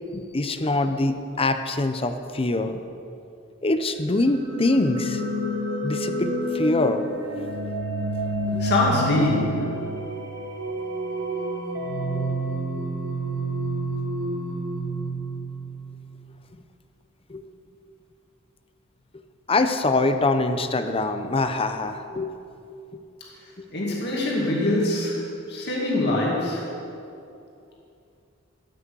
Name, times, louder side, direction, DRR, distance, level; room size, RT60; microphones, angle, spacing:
voice 1, 0.1-2.8 3.6-5.2 5.8-7.0 8.5-8.6 17.3-17.4 19.5-22.3 23.6-23.7, left 2 dB, 25° left, 9 dB, 0.7 m, -24 dB
sound 1, 4.1-16.0, right 1 dB, 60° right, 1.8 m, -29 dB
voice 2, 8.6-9.8 23.7-26.7, left 1 dB, 55° left, -3 dB, 2.3 m, -24 dB
14.0 x 6.3 x 8.4 m, 2.6 s
head